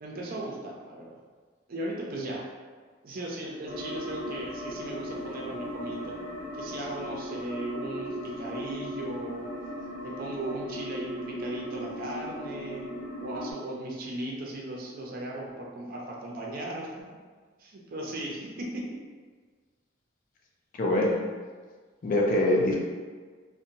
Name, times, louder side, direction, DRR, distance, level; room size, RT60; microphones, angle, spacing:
voice 1, 0.0-1.1 1.7-2.4 3.0-6.1 6.5-9.5 10.0-12.8 13.2-16.9 17.6-18.9, right 1 dB, 50° right, -2 dB, 0.5 m, -37 dB
sound 1, 3.7-13.5, equal, 20° right, 0.8 m, -37 dB
voice 2, 20.8-21.2 22.0-22.8, left 1 dB, 45° left, -1 dB, 0.4 m, -23 dB
2.7 x 2.1 x 2.6 m, 1.5 s
head